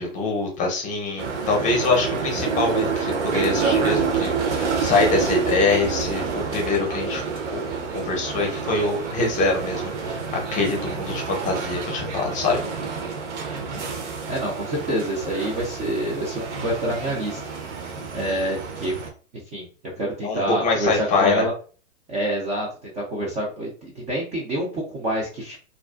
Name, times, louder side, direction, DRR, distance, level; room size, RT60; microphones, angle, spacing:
voice 1, 0.0-7.2 7.5-12.6 20.2-21.5, left 3 dB, 20° left, 1 dB, 0.7 m, -24 dB
sound 1, 1.2-19.1, right 5 dB, 65° right, 0.7 m, -28 dB
voice 2, 1.6-2.0 13.4-13.8 14.3-17.4 18.1-18.9 19.3-19.7 20.0-21.5 22.1-25.6, right 1 dB, 20° right, -3 dB, 0.4 m, -27 dB
2.4 x 2.3 x 2.2 m, 0.38 s
hypercardioid pair, 120°, 39 cm